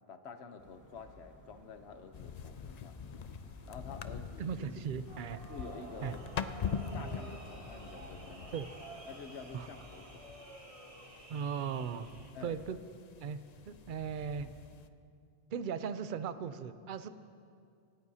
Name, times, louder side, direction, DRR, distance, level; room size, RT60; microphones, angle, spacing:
voice 1, 0.1-3.0 3.7-4.8 5.5-6.2 6.9-8.6 9.1-10.5 12.3-12.6, left 5 dB, 80° left, 8 dB, 1.2 m, -49 dB
sound 1, 0.6-10.1, left 1 dB, 15° left, 2.6 m, -58 dB
sound 2, 2.1-14.9, left 7 dB, 50° left, 0.5 m, -44 dB
voice 2, 4.4-5.4 6.0-6.1 7.0-7.1 8.5-8.7 9.5-9.7 11.3-12.1 12.4-12.8 13.2-13.4 13.7-14.5 15.5-17.1, right 7 dB, 60° right, 12 dB, 0.7 m, -37 dB
sound 3, 5.1-12.3, right 2 dB, 30° right, 1.5 m, -51 dB
27.5 x 13.5 x 2.8 m, 2.4 s
omnidirectional pair, 1.1 m